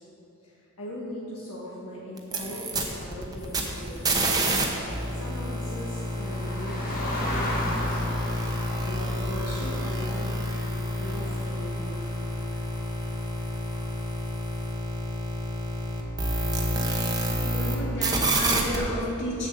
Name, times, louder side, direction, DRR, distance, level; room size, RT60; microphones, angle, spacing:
voice 1, 0.4-4.4 5.1-10.3 11.0-12.1, equal, 80° left, -7 dB, 1.6 m, -39 dB
sound 1, 2.2-4.6 4.9-17.8 18.0-18.8, right 1 dB, 15° right, 0.9 m, -29 dB
sound 2, 3.4-14.7, left 1 dB, 40° left, 1.5 m, -38 dB
voice 2, 17.4-19.5, equal, 55° left, -5 dB, 2.5 m, -31 dB
7.7 x 7.4 x 6.7 m, 2.9 s
head